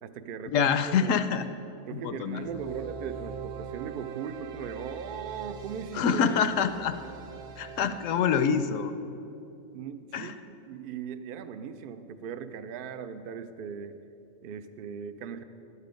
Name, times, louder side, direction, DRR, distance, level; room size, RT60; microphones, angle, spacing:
voice 1, 0.0-1.2 1.9-6.2 6.6-6.7 7.8-7.9 9.7-14.0 14.4-15.4, right 7 dB, 60° right, 10 dB, 0.6 m, -39 dB
voice 2, 0.5-1.4 1.9-2.5 5.9-6.9 7.6-8.9 10.1-10.3, left 7 dB, 75° left, 10 dB, 0.9 m, -26 dB
sound 1, 2.2-8.5, right 6 dB, 90° right, 1.2 m, -42 dB
12.0 x 8.3 x 5.1 m, 2.8 s
omnidirectional pair, 1.4 m